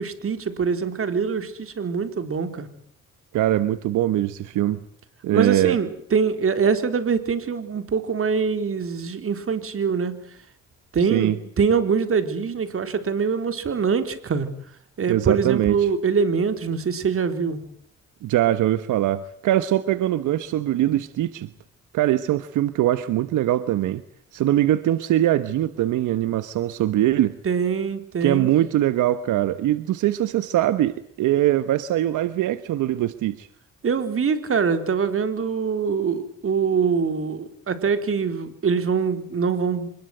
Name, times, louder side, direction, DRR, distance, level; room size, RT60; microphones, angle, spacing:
voice 1, 0.0-2.7 5.3-10.2 10.9-14.5 15.0-17.6 27.4-28.5 33.8-39.9, right 6 dB, 45° right, 4.2 m, -24 dB
voice 2, 3.3-4.8 5.2-5.8 11.1-11.4 15.1-15.9 18.2-21.5 21.9-24.0 24.3-27.4 28.2-33.5, right 13 dB, 85° right, 1.2 m, -22 dB
26.0 x 21.0 x 8.0 m
cardioid pair, 90°, 30 cm